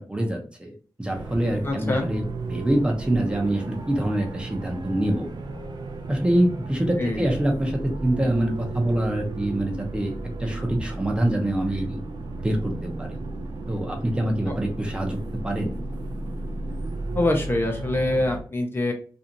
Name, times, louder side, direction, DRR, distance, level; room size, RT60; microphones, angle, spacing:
voice 1, 0.1-0.7 1.0-2.2 2.5-5.3 6.1-10.1 10.4-12.0 12.4-13.2 13.7-15.7, right 1 dB, 15° right, 2 dB, 0.6 m, -25 dB
sound 1, 1.1-18.4, right 2 dB, 70° right, 0.4 m, -34 dB
voice 2, 1.6-2.1 7.0-7.2 14.5-14.6 17.1-18.9, left 1 dB, 30° left, 3 dB, 0.5 m, -24 dB
2.5 x 2.3 x 2.8 m, 0.40 s
wide cardioid pair, 135°, 8 cm